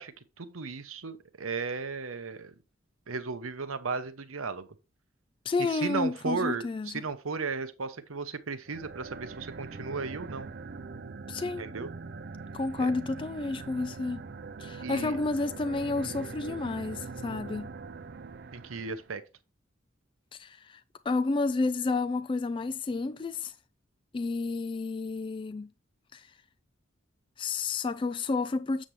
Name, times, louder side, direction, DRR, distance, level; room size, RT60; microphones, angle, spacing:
voice 1, 0.0-2.5 3.1-4.7 5.7-10.5 11.4-11.9 12.8-12.9 14.8-15.2 18.5-19.2, right 4 dB, 85° right, 0.9 m, -35 dB
voice 2, 5.5-7.0 11.3-11.6 12.5-14.3 14.6-17.7 20.3-23.6 24.1-25.7 26.1-26.3 27.4-28.8, left 3 dB, 25° left, 0.3 m, -31 dB
sound 1, 8.7-19.1, right 4 dB, 50° right, 0.5 m, -42 dB
7.4 x 7.3 x 3.2 m
head